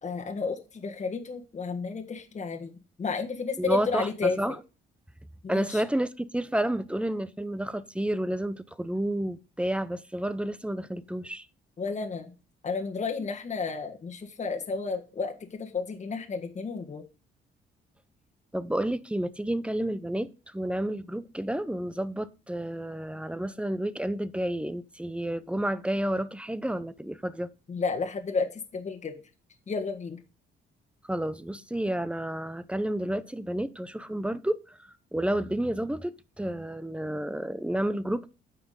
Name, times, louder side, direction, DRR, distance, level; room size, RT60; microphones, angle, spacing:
voice 1, 0.0-4.6 5.4-5.8 11.8-12.3 12.6-17.0 27.7-29.2 29.7-30.2, left 4 dB, 35° left, 1.5 m, -32 dB
voice 2, 3.6-4.6 5.5-11.5 18.5-27.5 31.1-34.8 35.1-38.3, right 1 dB, 5° right, 0.6 m, -30 dB
9.2 x 5.9 x 3.8 m
cardioid pair, 90°, 20 cm